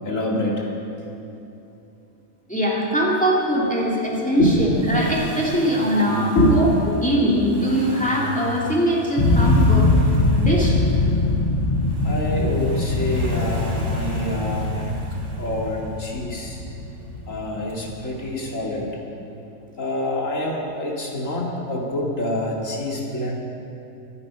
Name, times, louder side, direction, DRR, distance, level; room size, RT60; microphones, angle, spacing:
voice 1, 0.0-0.6 4.4-5.0 6.4-6.6 12.0-14.9 15.4-16.6 17.3-18.9 19.8-23.4, left 1 dB, 65° left, -2 dB, 2.5 m, -25 dB
voice 2, 2.5-9.9 10.4-10.8, equal, 5° left, -4 dB, 2.5 m, -22 dB
Accelerating revving vroom, 4.5-16.4 17.7-17.8, right 1 dB, 55° right, 2.2 m, -36 dB
sound 1, 9.2-18.0, left 2 dB, 30° left, 0.7 m, -22 dB
23.0 x 8.4 x 5.7 m, 2.8 s
omnidirectional pair, 1.5 m